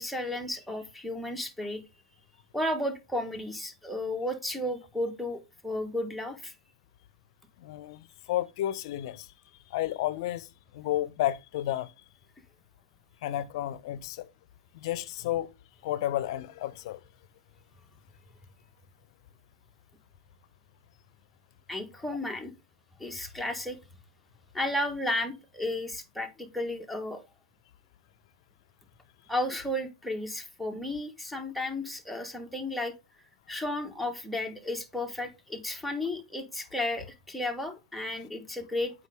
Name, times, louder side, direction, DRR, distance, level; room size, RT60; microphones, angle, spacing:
voice 1, 0.0-1.8 2.5-6.5 21.7-22.5 23.0-23.8 24.5-27.2 29.3-32.9 33.5-38.9, left 1 dB, ahead, 1.4 m, -33 dB
voice 2, 7.6-9.3 9.7-10.5 10.7-11.9 13.2-14.3 14.7-15.5 15.8-17.0, left 13 dB, 60° left, 0.7 m, -31 dB
8.1 x 5.1 x 3.5 m
hypercardioid pair, 115°, 3 cm